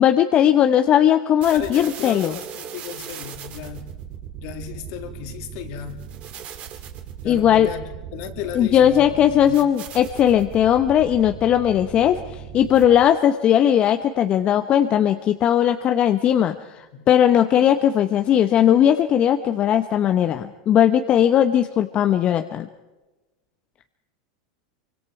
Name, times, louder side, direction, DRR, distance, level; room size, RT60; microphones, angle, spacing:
voice 1, 0.0-2.4 7.2-7.7 8.5-12.2 12.5-16.6 17.1-22.7, left 10 dB, 35° left, 8 dB, 0.9 m, -18 dB
sound 1, 1.4-13.2, right 9 dB, 45° right, 2.4 m, -38 dB
voice 2, 1.5-3.9 4.4-6.0 7.2-7.8 8.1-9.6 16.9-17.0, left 9 dB, 60° left, 5 dB, 2.8 m, -35 dB
25.0 x 24.5 x 4.7 m, 1.1 s
hypercardioid pair, 105°, 3 cm